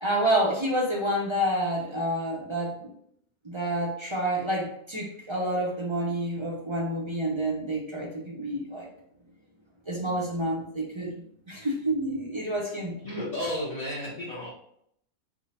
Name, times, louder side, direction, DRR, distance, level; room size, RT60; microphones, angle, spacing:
voice 1, 0.0-2.9 3.4-8.9 9.9-13.0, right 1 dB, 35° right, -4 dB, 0.4 m, -29 dB
voice 2, 13.0-14.5, left 1 dB, 40° left, -7 dB, 0.7 m, -32 dB
3.6 x 2.0 x 4.1 m, 0.70 s
omnidirectional pair, 1.5 m